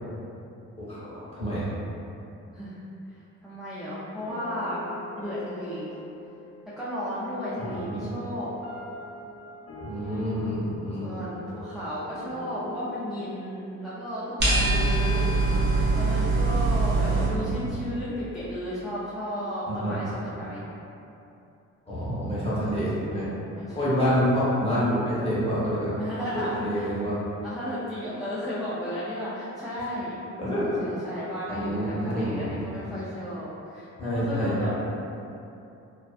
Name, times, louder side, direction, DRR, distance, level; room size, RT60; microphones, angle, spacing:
voice 1, 0.8-1.8 7.6-7.9 9.8-11.1 15.4-15.8 17.1-17.6 19.7-19.9 21.9-23.3 23.7-25.9 26.3-27.2 30.4-30.8 31.5-32.6 34.0-34.5, equal, 20° left, -10 dB, 0.9 m, -28 dB
voice 2, 2.5-2.8 3.1-4.8 5.2-5.9 6.8-8.5 10.0-10.7 11.0-15.6 15.9-20.6 22.7-23.9 26.0-26.9 27.4-30.1 30.5-34.7, equal, ahead, -11 dB, 0.4 m, -34 dB
sound 1, 4.2-15.3, left 1 dB, 55° left, 0.6 m, -43 dB
sound 2, 14.4-17.3, right 2 dB, 35° right, 0.8 m, -23 dB
2.4 x 2.3 x 2.3 m, 2.7 s
cardioid pair, 90°, 30 cm